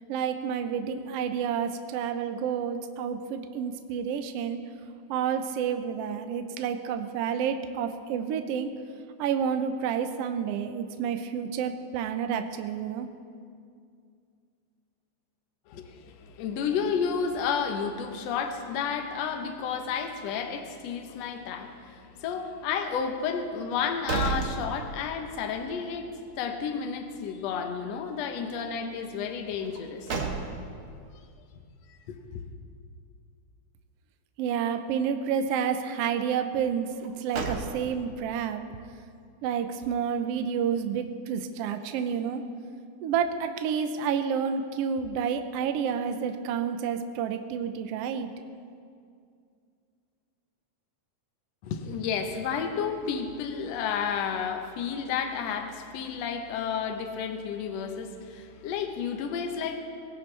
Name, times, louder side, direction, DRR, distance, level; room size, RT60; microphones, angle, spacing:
voice 1, 0.1-4.6 5.1-8.7 9.2-13.1 34.4-38.6 39.4-42.4 43.0-48.3, right 7 dB, 70° right, 7 dB, 1.5 m, -29 dB
voice 2, 15.7-30.3 32.1-32.4 51.6-59.8, left 6 dB, 70° left, 5 dB, 2.0 m, -31 dB
sound 1, 23.7-25.3 25.7-25.8 29.6-30.9 36.9-38.2, right 4 dB, 55° right, 1.9 m, -33 dB
20.0 x 16.5 x 3.3 m, 2.3 s
omnidirectional pair, 3.3 m